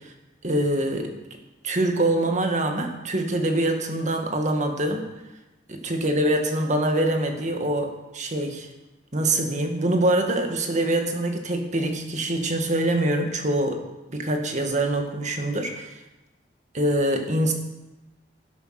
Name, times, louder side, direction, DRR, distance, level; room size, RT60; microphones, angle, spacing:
voice 1, 0.4-1.2 1.6-5.0 5.7-8.7 9.1-13.8 14.1-15.9 16.7-17.5, right 1 dB, 40° right, 4 dB, 1.8 m, -24 dB
12.0 x 11.5 x 5.9 m, 0.99 s
head